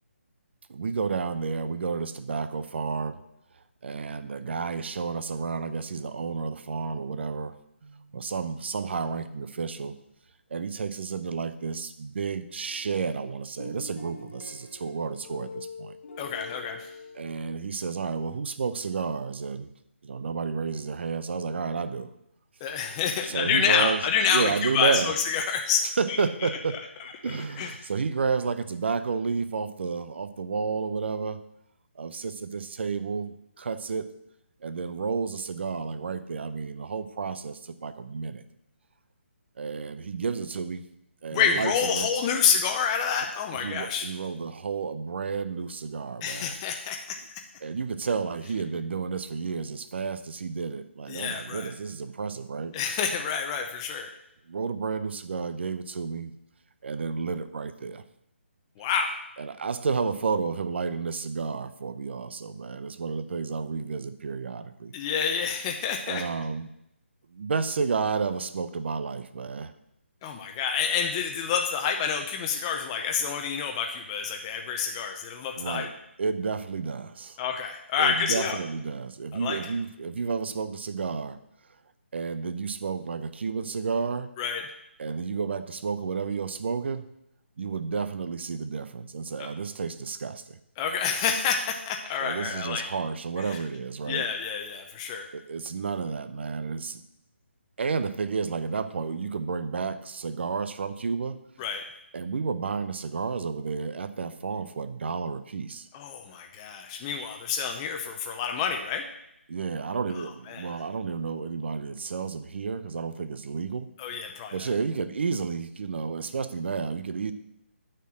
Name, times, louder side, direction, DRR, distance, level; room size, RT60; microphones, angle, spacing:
voice 1, 0.7-3.2 3.8-7.6 7.8-9.9 10.5-16.0 17.1-19.7 20.0-22.1 23.2-24.0 24.3-25.1 26.0-26.8 27.2-31.4 32.0-34.1 34.6-38.4 39.6-40.9 41.2-42.1 43.5-46.6 47.6-52.7 54.5-56.3 56.8-58.0 59.4-64.9 66.1-66.7 67.3-69.7 75.6-75.9 76.2-77.4 78.0-81.4 82.1-84.3 85.0-87.1 87.6-90.6 92.2-94.3 95.3-97.0 97.8-101.4 102.1-105.9 109.5-113.9 114.5-117.3, right 5 dB, 60° right, 12 dB, 0.7 m, -31 dB
sound 1, 12.7-13.1 13.6-17.9, left 3 dB, 65° left, 1.5 m, -44 dB
voice 2, 16.2-16.9 22.6-26.5 27.6-27.7 41.3-44.1 46.2-47.2 51.1-51.7 52.7-54.1 58.8-59.1 64.9-66.2 70.2-75.9 77.4-78.6 79.3-79.6 84.4-84.6 89.4-89.5 90.8-92.9 93.4-93.6 94.1-95.3 101.6-101.8 105.9-109.0 110.5-110.8 114.0-114.7, left 7 dB, 25° left, 3 dB, 0.7 m, -28 dB
9.1 x 4.5 x 7.5 m, 0.81 s
figure-of-eight pair, 150°, 7 cm